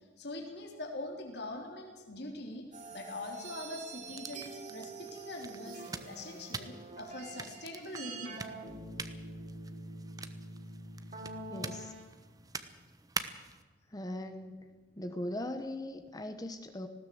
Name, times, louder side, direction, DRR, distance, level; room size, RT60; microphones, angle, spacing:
voice 1, 0.2-2.6 2.9-8.5, left 2 dB, 60° left, 1 dB, 3.7 m, -43 dB
sound 1, 2.7-12.0, right 3 dB, 40° right, 3.4 m, -46 dB
sound 2, 4.0-13.6, right 4 dB, 20° right, 1.1 m, -45 dB
voice 2, 11.5-11.9 13.9-14.7 14.9-16.9, left 1 dB, 20° left, 7 dB, 1.1 m, -39 dB
19.5 x 17.0 x 7.9 m, 1.4 s
head